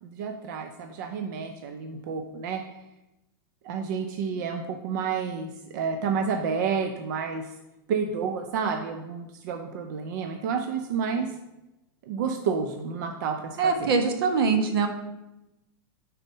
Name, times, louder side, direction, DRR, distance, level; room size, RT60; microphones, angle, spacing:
voice 1, 0.0-2.6 3.6-7.5 7.9-11.3 12.0-13.9, right 6 dB, 55° right, 5 dB, 0.5 m, -30 dB
voice 2, 13.6-14.9, right 5 dB, 80° right, 6 dB, 1.0 m, -23 dB
5.1 x 4.2 x 5.3 m, 0.95 s
supercardioid pair, 170°, 12 cm